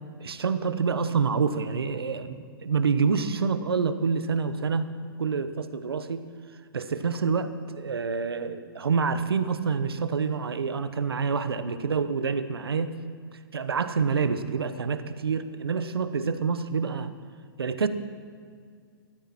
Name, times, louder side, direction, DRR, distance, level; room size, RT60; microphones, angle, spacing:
voice 1, 0.2-4.9 5.2-6.2 6.7-12.9 13.5-17.1 17.6-17.9, right 5 dB, 90° right, 11 dB, 1.0 m, -27 dB
19.0 x 14.0 x 4.2 m, 2.1 s
hypercardioid pair, 130°, 12 cm